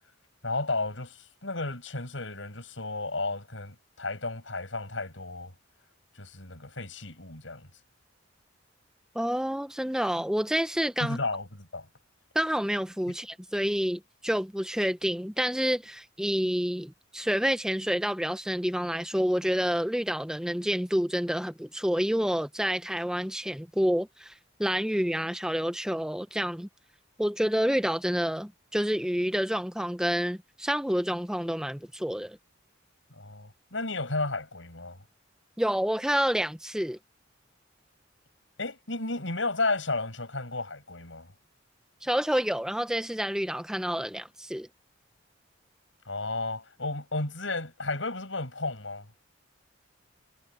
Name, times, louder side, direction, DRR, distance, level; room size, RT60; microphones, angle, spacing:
voice 1, 0.4-5.5 6.2-7.7 11.0-11.9 33.1-35.0 38.6-41.3 46.0-49.1, left 3 dB, 75° left, 7.9 m, -33 dB
voice 2, 9.1-11.2 12.3-24.3 24.6-26.7 27.2-32.4 35.6-37.0 42.0-44.7, equal, 5° right, 1.0 m, -28 dB
head